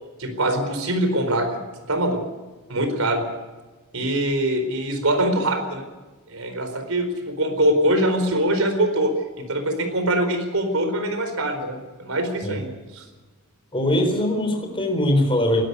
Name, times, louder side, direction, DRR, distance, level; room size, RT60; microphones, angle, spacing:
voice 1, 0.2-1.5 1.9-2.2 2.7-3.2 3.9-5.9 6.3-13.0, right 1 dB, 70° right, 7 dB, 4.4 m, -23 dB
voice 2, 13.7-15.6, left 1 dB, 25° left, 3 dB, 3.9 m, -21 dB
21.0 x 13.0 x 9.6 m, 1.2 s
head